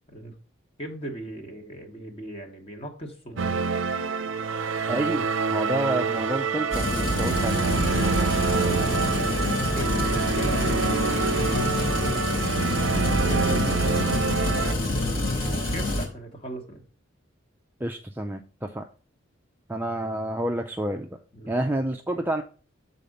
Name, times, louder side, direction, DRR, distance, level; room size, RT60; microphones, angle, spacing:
voice 1, 0.8-3.6 8.7-12.4 13.1-14.1 14.4-16.8 21.3-21.6, right 1 dB, 30° left, 2 dB, 1.2 m, -38 dB
sound 1, 3.4-14.7, right 5 dB, 70° right, 0.5 m, -26 dB
voice 2, 4.9-7.7 13.6-13.8 17.8-18.9 19.7-21.2 21.5-22.4, right 1 dB, 10° right, 4 dB, 0.4 m, -29 dB
sound 2, 6.7-16.1, left 2 dB, 90° left, 2.7 m, -27 dB
sound 3, 7.7-11.6, left 1 dB, 70° left, 0.9 m, -40 dB
6.8 x 4.2 x 5.1 m, 0.39 s
head